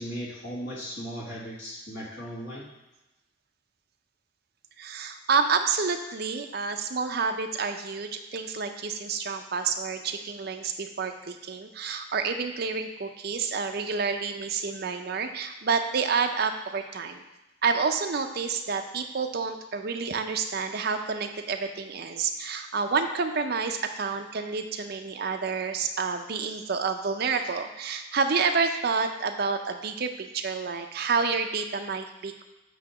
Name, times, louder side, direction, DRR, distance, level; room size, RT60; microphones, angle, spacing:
voice 1, 0.0-2.7, equal, 60° left, -7 dB, 1.5 m, -37 dB
voice 2, 4.8-17.2 17.6-32.4, right 5 dB, 50° right, 6 dB, 0.5 m, -29 dB
8.3 x 2.8 x 5.8 m, 1.0 s
head